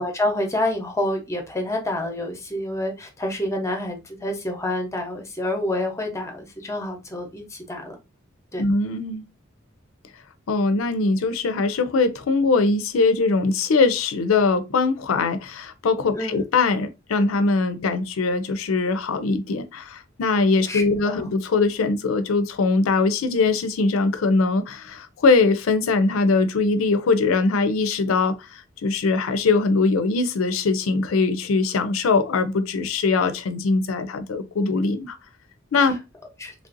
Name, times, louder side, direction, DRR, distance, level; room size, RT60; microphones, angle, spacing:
voice 1, 0.0-8.0 8.5-8.6 16.1-16.4 20.7-21.3 36.4-36.5, left 1 dB, 15° left, 0.7 m, -28 dB
voice 2, 8.6-9.2 10.5-35.2 35.7-36.0, left 3 dB, 85° left, 0.4 m, -21 dB
3.2 x 2.5 x 2.5 m
head